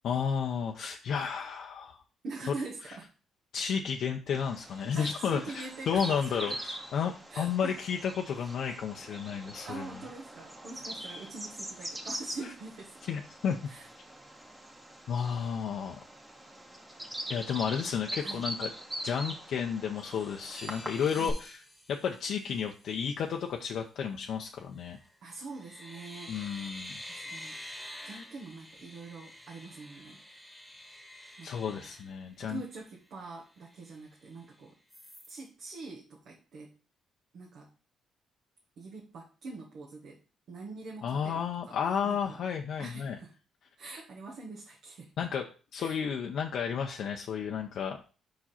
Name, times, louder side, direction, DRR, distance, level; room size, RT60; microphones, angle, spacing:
voice 1, 0.0-2.0 2.5-2.6 2.9-3.0 3.5-9.9 13.1-13.6 15.1-16.0 17.3-18.7 19.0-21.6 21.9-25.0 26.3-27.0 31.4-32.6 41.0-43.2 45.2-45.5 45.7-48.0, left 7 dB, 70° left, 2 dB, 0.6 m, -32 dB
voice 2, 2.2-3.1 4.7-6.6 7.3-7.8 9.7-13.0 13.7-13.9 17.8-18.4 21.1-21.4 25.2-26.3 27.0-27.6 28.0-30.2 31.4-31.9 32.4-34.8 35.3-36.7 37.3-37.7 38.8-40.2 40.5-41.8 42.0-42.4 42.8-43.3 43.8-45.1 45.8-46.0, right 3 dB, 70° right, -2 dB, 1.3 m, -44 dB
Bird vocalization bird call bird song, 4.3-21.3, right 1 dB, 15° right, 1.3 m, -42 dB
sound 1, 19.9-23.0 24.8-25.1 25.5-32.8 33.2-33.3 33.6-34.5 34.9-35.4, equal, 5° left, 1.5 m, -48 dB
5.1 x 4.7 x 4.3 m, 0.36 s
cardioid pair, 90°, 0 cm